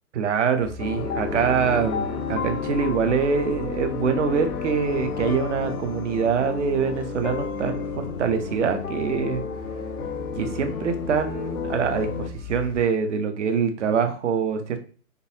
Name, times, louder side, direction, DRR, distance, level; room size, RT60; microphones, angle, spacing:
voice 1, 0.1-9.4 10.3-14.8, right 6 dB, 55° right, 7 dB, 0.8 m, -24 dB
sound 1, 0.6-12.8, left 4 dB, 15° left, 0.6 m, -39 dB
sound 2, 0.8-12.3, left 6 dB, 80° left, 0.6 m, -32 dB
3.9 x 2.6 x 2.7 m, 0.39 s
hypercardioid pair, 145°, 44 cm